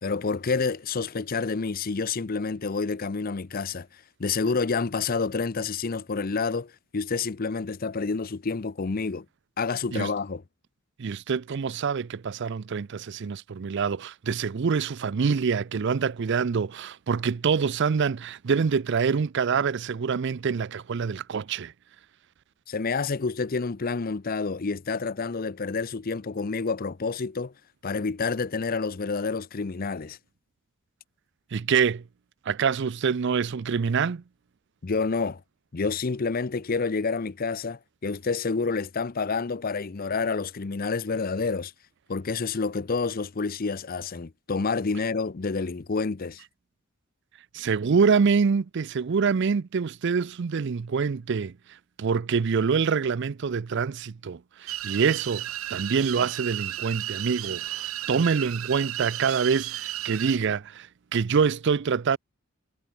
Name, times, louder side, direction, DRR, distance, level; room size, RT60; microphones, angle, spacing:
voice 1, 0.0-3.9 4.2-9.3 9.6-10.4 22.7-27.5 27.8-30.2 34.8-35.4 35.7-41.7 42.1-46.4, left 4 dB, 45° left, 0.6 m, -28 dB
voice 2, 11.0-21.7 31.5-32.0 32.5-34.2 47.5-51.5 52.0-55.4 55.7-60.9 61.1-62.2, right 5 dB, 55° right, 0.5 m, -25 dB
sound 1, 54.7-60.4, right 14 dB, 85° right, 0.9 m, -34 dB
head